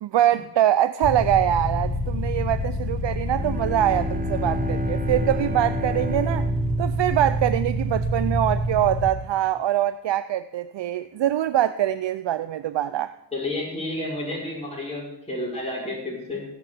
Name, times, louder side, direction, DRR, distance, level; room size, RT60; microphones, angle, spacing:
voice 1, 0.0-6.5 6.8-13.1, right 12 dB, 75° right, 0.6 m, -23 dB
sound 1, 1.0-9.1, equal, 55° left, 3.0 m, -27 dB
Bowed string instrument, 3.2-8.1, right 1 dB, 20° right, 1.2 m, -33 dB
voice 2, 13.3-16.5, left 2 dB, 15° left, 6.2 m, -31 dB
15.5 x 7.2 x 8.2 m
cardioid pair, 65°, 44 cm